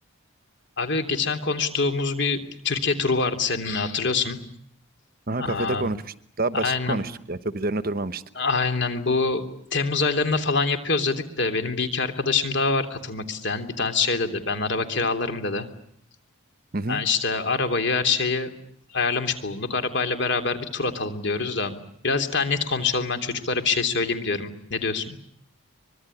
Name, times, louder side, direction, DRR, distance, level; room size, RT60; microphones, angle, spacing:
voice 1, 0.8-2.4 2.6-4.4 5.4-5.9 6.5-7.0 8.3-9.4 9.7-15.7 16.9-18.5 18.9-21.8 22.0-25.2, left 4 dB, 55° left, 7 dB, 3.2 m, -25 dB
voice 2, 5.3-8.2 16.7-17.0, right 2 dB, 40° right, 13 dB, 1.0 m, -28 dB
24.5 x 22.5 x 10.0 m, 0.67 s
head